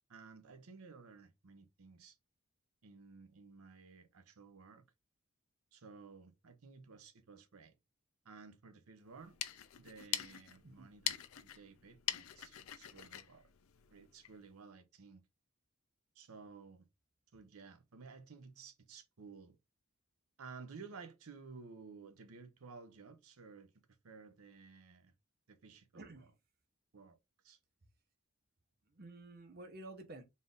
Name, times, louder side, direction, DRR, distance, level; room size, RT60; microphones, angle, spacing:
voice 1, 0.1-2.2 2.8-4.8 5.7-7.8 8.2-9.4 9.8-11.2 11.5-13.4 13.9-15.2 16.1-16.9 17.3-19.6 20.4-23.7 24.0-25.1 25.5-26.3 26.9-27.2 27.4-27.6, right 4 dB, 90° right, 0.7 m, -55 dB
sound 1, 9.1-14.4, left 12 dB, 80° left, 0.5 m, -43 dB
voice 2, 25.9-26.3 28.9-30.2, right 2 dB, 45° right, 0.8 m, -51 dB
4.1 x 2.6 x 3.5 m
head